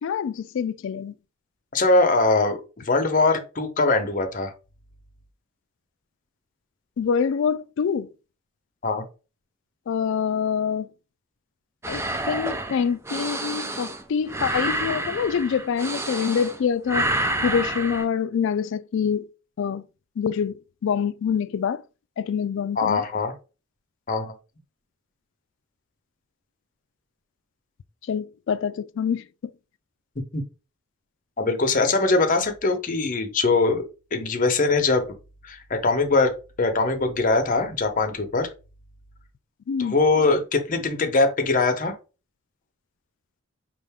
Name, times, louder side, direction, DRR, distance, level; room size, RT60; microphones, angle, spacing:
voice 1, 0.0-1.1 7.0-8.1 9.9-10.9 11.9-17.1 17.4-19.3 19.6-19.8 20.2-20.6 20.8-21.8 22.2-23.0 28.1-29.2 39.7-40.0, left 7 dB, 60° left, 0.3 m, -25 dB
voice 2, 1.7-4.5 8.8-9.0 22.8-23.3 24.1-24.3 30.3-30.4 31.4-33.8 34.1-35.2 35.4-38.5 39.8-42.0, left 3 dB, 40° left, 0.8 m, -22 dB
sound 1, 11.8-16.6 16.9-18.0, right 1 dB, 10° right, 0.4 m, -28 dB
5.4 x 2.5 x 3.5 m
head